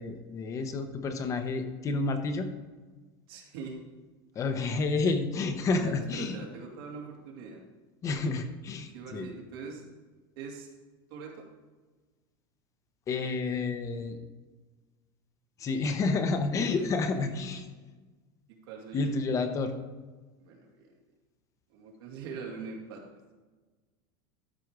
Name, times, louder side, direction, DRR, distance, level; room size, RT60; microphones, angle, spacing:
voice 1, 0.0-2.5 4.3-6.4 8.0-9.3 13.1-14.2 15.6-17.7 18.9-19.7, left 3 dB, 25° left, 7 dB, 0.8 m, -30 dB
voice 2, 3.3-3.8 4.6-4.7 5.7-7.6 8.9-9.8 10.4-10.7 11.1-11.4 16.7-17.5 18.5-19.1 20.4-20.9 21.7-23.0, right 5 dB, 80° right, -1 dB, 2.5 m, -42 dB
13.0 x 5.1 x 4.7 m, 1.3 s
supercardioid pair, 155°, 12 cm